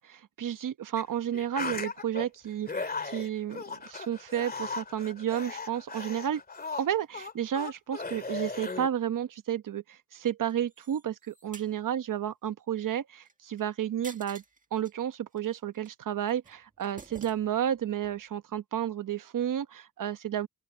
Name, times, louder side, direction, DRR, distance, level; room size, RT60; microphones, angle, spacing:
voice 1, 0.0-6.4 6.8-14.4 14.7-20.5, right 10 dB, 60° right, 1.0 m, -32 dB
sound 1, 1.0-1.1 1.3-2.3 2.7-8.9, left 4 dB, 25° left, 2.4 m, -37 dB
sound 2, 10.5-11.7 13.2-13.6 14.0-14.9 15.3-15.9 16.3-17.7 18.0-18.2, right 3 dB, 20° right, 1.9 m, -51 dB
open air
wide cardioid pair, 125°, 36 cm